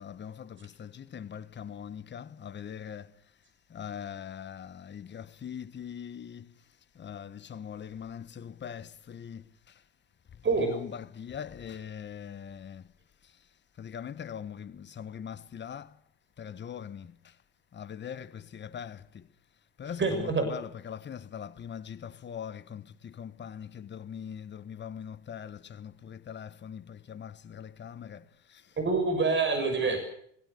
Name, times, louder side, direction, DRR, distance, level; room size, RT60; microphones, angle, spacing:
voice 1, 0.0-3.1 3.7-6.5 7.0-9.4 10.6-12.8 13.8-15.9 16.4-17.2 17.7-19.2 19.8-28.2 28.5-28.6 29.8-30.0, left 8 dB, 25° left, 1.3 m, -41 dB
voice 2, 10.4-10.7 19.8-20.5 28.8-30.0, right 4 dB, 25° right, 6.5 m, -26 dB
26.0 x 17.0 x 6.7 m
hypercardioid pair, 85°, 47 cm